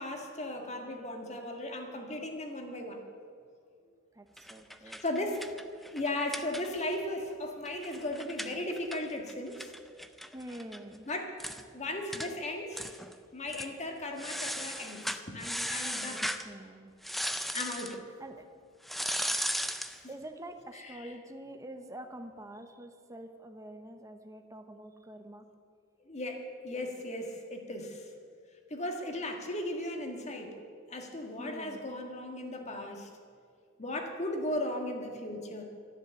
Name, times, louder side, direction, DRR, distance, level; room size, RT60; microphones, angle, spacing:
voice 1, 0.0-3.0 4.8-5.4 5.8-9.7 11.1-11.3 11.7-13.0 13.3-16.3 17.5-18.0 20.7-21.1 26.1-28.1 28.7-30.6 30.9-33.1 33.8-35.6, left 1 dB, 35° left, 3 dB, 1.8 m, -36 dB
voice 2, 4.1-5.0 10.3-11.1 11.7-11.9 13.1-13.2 16.2-16.9 18.2-18.5 20.1-25.5 31.4-31.9, right 1 dB, 15° right, 6 dB, 0.9 m, -46 dB
sound 1, 4.4-7.0 7.3-7.4 7.7-10.8 11.1-11.2 11.4-11.6 12.1-12.3 12.7-13.2 13.5-13.7 14.2-16.5 17.0-18.0 18.8-20.0, equal, ahead, 0.5 m, -36 dB
13.0 x 10.5 x 7.8 m, 2.2 s
head